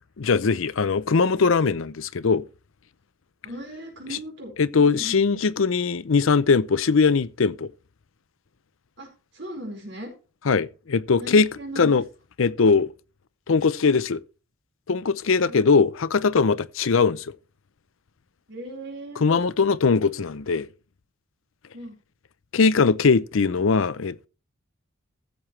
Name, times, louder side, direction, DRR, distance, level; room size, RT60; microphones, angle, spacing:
voice 1, 0.2-2.4 4.1-4.2 4.6-7.7 10.5-11.5 11.8-12.0 12.4-12.9 13.5-14.2 14.9-17.3 19.2-20.7 22.5-24.3, left 4 dB, 65° left, 0.6 m, -21 dB
voice 2, 3.4-4.5 4.8-5.4 9.0-9.1 9.3-10.1 11.2-12.0 15.5-15.6 18.5-19.4 21.7-22.0, right 1 dB, 55° right, 4.7 m, -38 dB
15.5 x 7.4 x 3.2 m
head